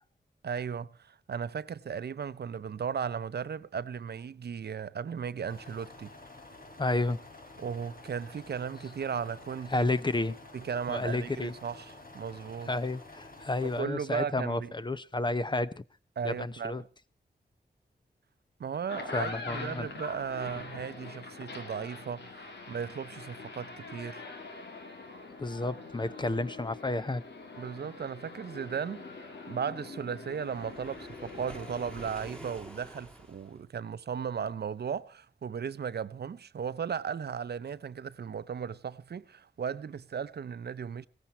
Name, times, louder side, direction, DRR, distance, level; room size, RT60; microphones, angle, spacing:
voice 1, 0.4-6.1 7.6-9.9 10.5-12.7 13.6-14.7 16.2-16.8 18.6-24.3 27.6-41.1, right 7 dB, 70° right, 0.7 m, -36 dB
sound 1, 5.5-13.8, left 2 dB, 55° left, 3.3 m, -50 dB
voice 2, 6.8-7.2 9.7-10.4 10.9-11.5 12.7-15.8 16.2-16.8 19.1-19.9 25.4-27.2, left 2 dB, 25° left, 0.7 m, -31 dB
sound 2, 18.7-32.1, left 3 dB, 85° left, 3.2 m, -44 dB
Waves surf, 30.3-33.6, equal, 5° left, 2.8 m, -48 dB
17.0 x 14.5 x 4.4 m
wide cardioid pair, 90°, 18 cm